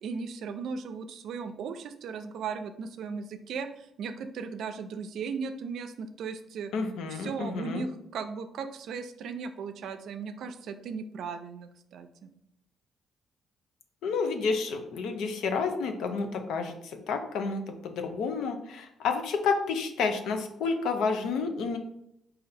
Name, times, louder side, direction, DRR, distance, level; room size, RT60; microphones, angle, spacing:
voice 1, 0.0-6.7 7.1-12.3, right 5 dB, 75° right, 9 dB, 0.4 m, -37 dB
voice 2, 6.7-7.9 14.0-21.8, left 4 dB, 80° left, 6 dB, 0.6 m, -30 dB
4.2 x 2.7 x 4.0 m, 0.75 s
cardioid pair, 90°, 0 cm